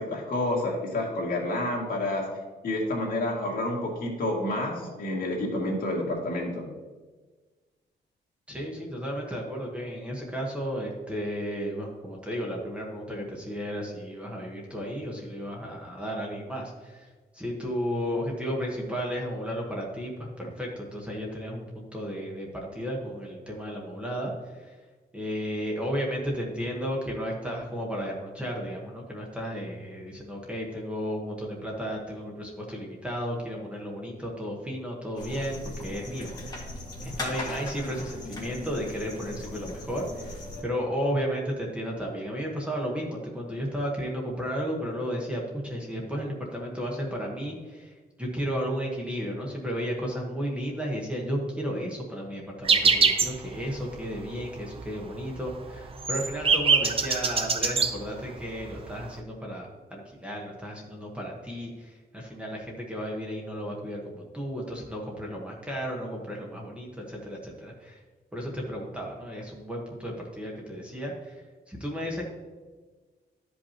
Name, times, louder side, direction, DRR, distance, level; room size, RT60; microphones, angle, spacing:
voice 1, 0.0-2.3 2.6-6.7, left 1 dB, 55° left, -3 dB, 2.0 m, -29 dB
voice 2, 8.5-24.8 25.1-36.7 37.0-68.0 68.3-72.3, equal, 5° right, -2 dB, 1.1 m, -33 dB
sound 1, 35.2-40.6, left 2 dB, 20° left, 1.7 m, -38 dB
sound 2, 52.6-53.4 53.7-53.8 54.1-54.5 54.8-54.9 55.2-57.9 58.7-58.8 59.0-59.2, right 5 dB, 30° right, 0.5 m, -23 dB
12.5 x 5.4 x 2.9 m, 1.3 s
wide cardioid pair, 170°, 18 cm